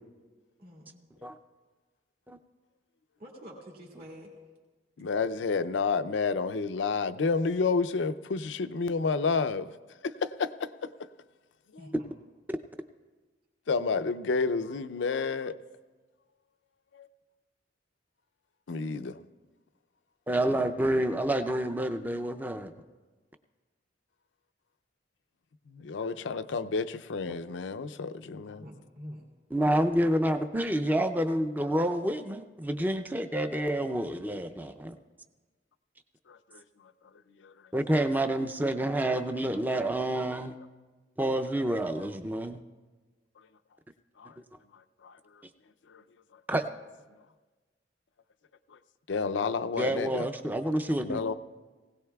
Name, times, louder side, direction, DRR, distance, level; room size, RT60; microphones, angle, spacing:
voice 1, 0.6-1.0 3.2-4.3 11.8-12.1 28.4-29.2, equal, 55° right, -4 dB, 2.0 m, -47 dB
voice 2, 5.0-9.7 10.0-10.9 13.7-15.5 18.7-19.2 25.7-28.6 36.3-36.4 37.4-37.5 44.2-44.3 45.0-45.1 45.9-46.0 49.1-50.3 51.0-51.3, left 4 dB, 85° left, 12 dB, 0.5 m, -30 dB
voice 3, 20.3-22.7 27.3-27.4 29.5-34.9 37.7-40.6 41.2-42.6 46.5-46.6 49.8-51.2, right 1 dB, 10° right, 8 dB, 0.5 m, -28 dB
19.5 x 17.0 x 2.3 m, 1.3 s
head